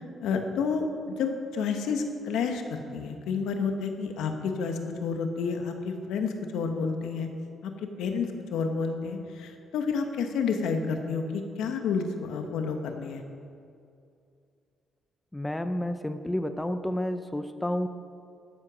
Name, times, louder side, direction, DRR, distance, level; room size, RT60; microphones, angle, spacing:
voice 1, 0.2-0.8 1.2-7.3 7.6-7.7 8.0-13.2, left 5 dB, 85° left, 5 dB, 1.2 m, -30 dB
voice 2, 15.3-17.9, left 1 dB, 10° left, 9 dB, 0.6 m, -30 dB
13.0 x 8.0 x 6.2 m, 2.4 s
cardioid pair, 90°, 0 cm